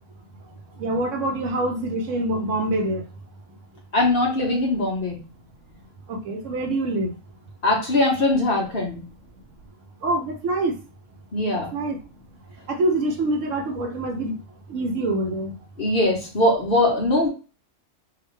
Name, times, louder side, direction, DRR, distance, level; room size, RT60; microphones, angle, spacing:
voice 1, 0.8-3.0 6.1-7.1 10.0-10.8 11.7-12.0 12.7-14.4 14.7-15.5, right 1 dB, 70° right, 4 dB, 0.9 m, -25 dB
voice 2, 3.9-5.2 7.6-9.0 11.3-11.7 15.8-17.3, left 1 dB, 45° left, -2 dB, 1.0 m, -21 dB
2.9 x 2.4 x 3.1 m, 0.33 s
omnidirectional pair, 1.5 m